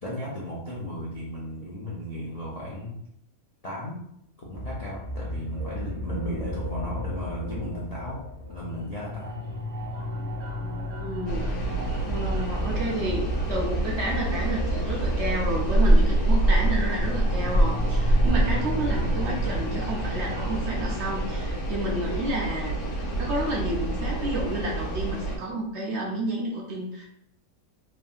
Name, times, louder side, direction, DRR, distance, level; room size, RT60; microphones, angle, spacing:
voice 1, 0.0-2.9 3.6-4.0 4.4-8.2 8.5-9.4, equal, 50° left, -6 dB, 0.4 m, -35 dB
sound 1, 4.5-21.5, left 1 dB, 80° right, 1.1 m, -35 dB
voice 2, 11.0-11.8 12.1-27.1, right 1 dB, 60° right, -2 dB, 0.8 m, -31 dB
sound 2, 11.3-25.4, right 1 dB, 85° left, 1.3 m, -25 dB
3.2 x 2.7 x 2.3 m, 0.75 s
omnidirectional pair, 1.5 m